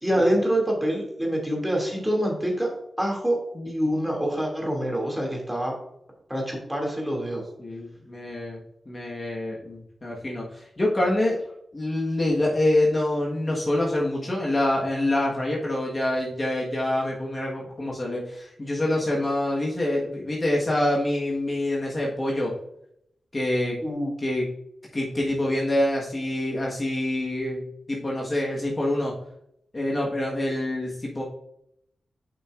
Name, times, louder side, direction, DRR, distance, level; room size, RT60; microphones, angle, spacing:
voice 1, 0.0-2.7 3.0-3.4 3.7-5.7 6.3-7.4 23.8-24.1, equal, 10° right, -1 dB, 2.4 m, -25 dB
voice 2, 3.5-3.9 7.6-8.6 8.9-11.4 11.7-22.5 23.3-23.8 24.2-24.5 24.9-29.2 29.7-31.2, left 1 dB, 30° left, -3 dB, 1.4 m, -26 dB
8.3 x 5.8 x 2.5 m, 0.75 s
cardioid pair, 85°, 0 cm